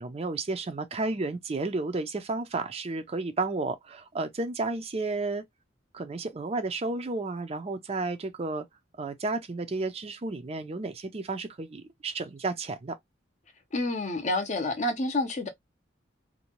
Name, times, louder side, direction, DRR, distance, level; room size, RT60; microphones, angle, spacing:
voice 1, 0.0-5.4 5.9-8.6 9.0-12.9, right 3 dB, 35° right, 0.4 m, -32 dB
voice 2, 13.7-15.5, left 2 dB, 40° left, 0.6 m, -28 dB
2.6 x 2.2 x 2.9 m
head